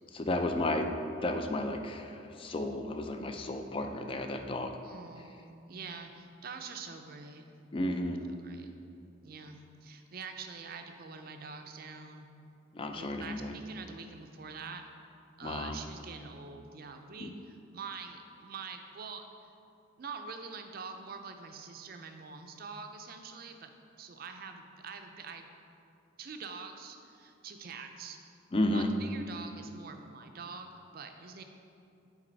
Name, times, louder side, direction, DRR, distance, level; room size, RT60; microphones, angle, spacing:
voice 1, 0.1-0.9 1.2-4.8 7.7-8.2 12.7-13.5 15.4-15.8 17.2-17.3 28.5-28.9, left 1 dB, 25° left, 6 dB, 0.3 m, -32 dB
voice 2, 4.8-7.4 8.4-8.7 9.2-12.3 12.9-14.9 15.4-19.2 20.0-23.7 24.0-25.5 26.2-28.3 28.6-31.4, right 5 dB, 50° right, 6 dB, 0.4 m, -45 dB
7.5 x 4.0 x 3.9 m, 2.6 s
head